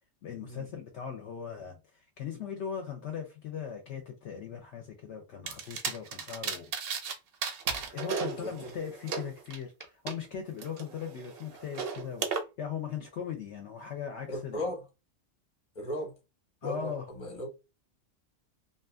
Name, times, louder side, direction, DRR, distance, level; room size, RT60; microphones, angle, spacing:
voice 1, 0.2-6.7 7.9-14.7 16.6-17.1, left 7 dB, 70° left, 0.8 m, -39 dB
sound 1, 5.5-7.1 7.4-10.1 10.6-12.4, right 6 dB, 60° right, 0.6 m, -35 dB
voice 2, 14.3-14.8 15.7-16.1 16.6-17.6, left 1 dB, 30° left, 0.9 m, -37 dB
2.6 x 2.4 x 2.3 m
omnidirectional pair, 1.3 m